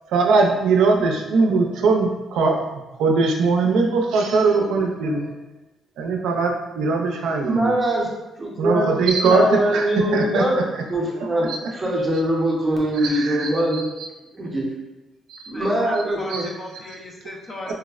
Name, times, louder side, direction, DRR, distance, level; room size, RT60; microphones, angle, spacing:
voice 1, 0.1-5.3 6.0-7.7 8.6-10.4 10.7-10.8 11.2-11.6 12.9-14.1 15.3-15.5 16.3-16.5 17.7-17.8, right 4 dB, 85° right, 1 dB, 0.4 m, -21 dB
voice 2, 7.5-8.1 8.4-8.9 9.3-10.6 10.9-13.9 14.3-14.7 15.5-16.5, right 1 dB, 15° right, -4 dB, 0.6 m, -22 dB
voice 3, 15.5-17.7, left 1 dB, 25° left, 0 dB, 0.4 m, -37 dB
4.5 x 2.0 x 2.3 m, 1.1 s
cardioid pair, 165°, 0 cm